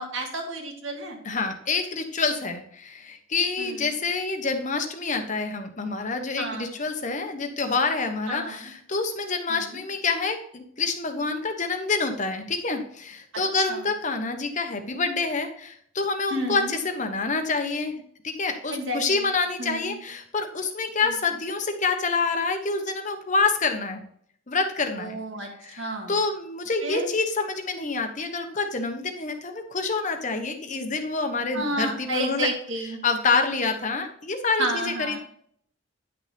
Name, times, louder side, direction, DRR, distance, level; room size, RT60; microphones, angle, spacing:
voice 1, 0.0-1.2 3.6-3.9 6.4-6.8 8.3-8.7 9.5-9.8 13.7-13.8 16.3-16.7 18.7-19.3 19.6-20.0 21.0-21.1 25.0-25.5 25.8-26.1 26.8-27.1 31.5-33.0 34.6-35.2, right 1 dB, 70° right, 2 dB, 2.1 m, -31 dB
voice 2, 1.2-24.0 24.5-25.2 25.6-32.5 33.0-35.2, left 4 dB, 35° left, 6 dB, 1.0 m, -27 dB
9.9 x 6.5 x 3.4 m, 0.63 s
head